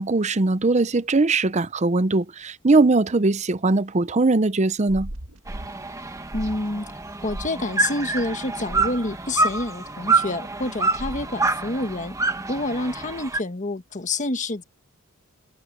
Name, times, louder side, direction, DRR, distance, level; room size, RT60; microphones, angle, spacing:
voice 1, 0.0-5.1, right 3 dB, 30° right, 0.6 m, -20 dB
sound 1, 4.9-5.7 6.3-6.7 7.3-7.6 8.7-9.0 11.0-11.4, right 1 dB, 85° right, 1.7 m, -36 dB
sound 2, 5.5-13.4, right 3 dB, 15° right, 1.3 m, -27 dB
voice 2, 6.3-6.9 7.2-12.2 12.5-14.6, left 2 dB, 35° left, 1.4 m, -28 dB
head